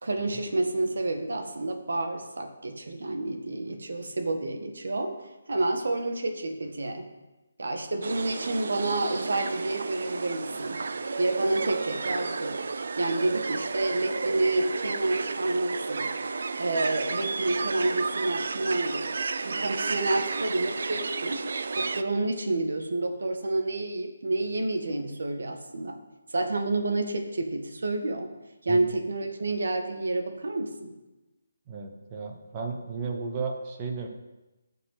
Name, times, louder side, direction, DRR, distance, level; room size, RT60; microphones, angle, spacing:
voice 1, 0.0-5.1 5.5-7.1 7.6-10.8 11.2-12.6 13.0-16.1 16.6-19.1 19.4-21.5 21.8-26.0 26.3-28.3 28.6-30.9, right 2 dB, 80° right, 5 dB, 1.8 m, -29 dB
sound 1, 8.0-22.0, right 4 dB, 60° right, 0.6 m, -32 dB
voice 2, 31.7-34.1, right 4 dB, 20° right, 3 dB, 1.0 m, -34 dB
14.5 x 6.7 x 5.8 m, 1.1 s
hypercardioid pair, 175°, 0 cm